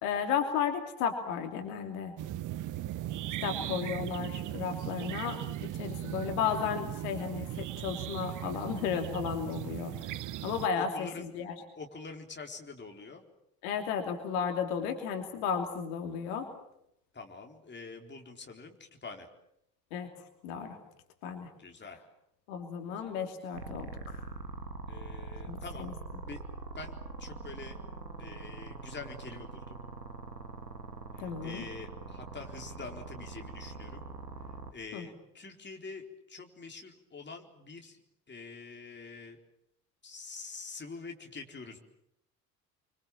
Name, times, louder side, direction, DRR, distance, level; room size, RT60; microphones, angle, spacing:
voice 1, 0.0-2.1 3.4-9.9 10.4-11.5 13.6-16.5 19.9-20.1 20.4-20.8 21.2-21.5 22.5-24.2 25.5-25.9 31.2-31.6 34.9-35.1, left 7 dB, 65° left, 5 dB, 3.0 m, -34 dB
sound 1, 2.2-10.7, right 13 dB, 40° right, 0.9 m, -38 dB
voice 2, 3.4-3.9 10.8-11.3 11.8-13.2 17.1-19.3 21.6-22.0 22.9-23.1 24.9-25.9 26.2-26.4 26.8-27.8 28.2-29.8 31.2-34.0 34.7-38.0 38.3-39.4 40.0-41.8, left 4 dB, 25° left, 3 dB, 4.2 m, -45 dB
sound 2, 23.5-34.7, right 4 dB, 85° right, 1.8 m, -43 dB
28.0 x 25.0 x 7.5 m, 0.79 s
figure-of-eight pair, 60°, 47 cm